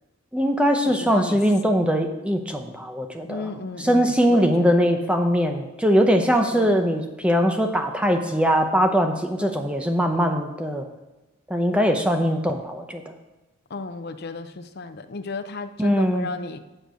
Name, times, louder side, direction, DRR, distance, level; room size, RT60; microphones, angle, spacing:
voice 1, 0.3-3.5 3.8-10.9 11.5-13.1 15.8-16.3, equal, 5° right, 5 dB, 0.7 m, -21 dB
voice 2, 0.8-1.4 3.3-4.7 6.4-6.8 9.4-9.6 13.7-16.6, left 3 dB, 50° left, 9 dB, 0.6 m, -34 dB
10.5 x 6.7 x 6.2 m, 1.0 s
head